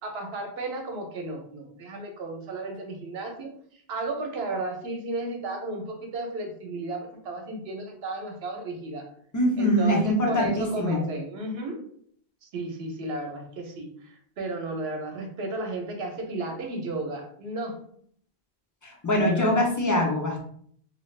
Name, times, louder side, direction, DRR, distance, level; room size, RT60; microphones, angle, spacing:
voice 1, 0.0-3.5 3.9-9.0 9.6-11.8 12.4-17.8 19.1-19.5, right 2 dB, 70° right, 3 dB, 0.9 m, -34 dB
voice 2, 9.3-11.0 18.8-20.4, equal, 25° left, -1 dB, 0.5 m, -23 dB
2.8 x 2.4 x 3.1 m, 0.62 s
omnidirectional pair, 1.1 m